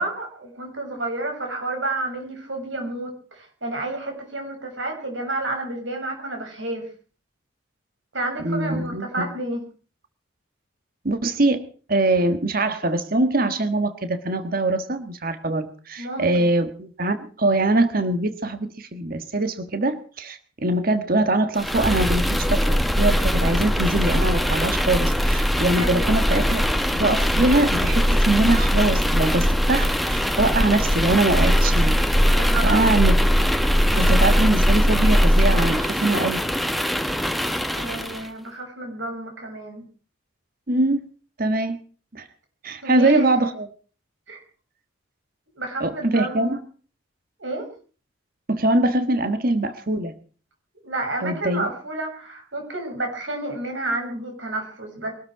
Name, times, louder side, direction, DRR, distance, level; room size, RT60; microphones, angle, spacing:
voice 1, 0.0-6.9 8.1-9.6 16.0-16.5 25.7-26.2 32.3-33.2 37.7-39.8 42.8-43.4 44.3-44.4 45.5-46.6 47.4-47.7 50.8-55.1, right 2 dB, 70° right, 3 dB, 6.8 m, -30 dB
voice 2, 8.4-9.3 11.0-26.7 26.9-33.5 33.9-36.5 40.7-41.0 41.4-41.8 42.1-42.3 42.6-43.7 45.8-46.6 48.5-50.1 51.2-51.7, right 2 dB, 45° right, 9 dB, 1.4 m, -23 dB
sound 1, 21.6-38.3, equal, ahead, 1.2 m, -20 dB
22.5 x 13.0 x 4.8 m, 0.41 s
head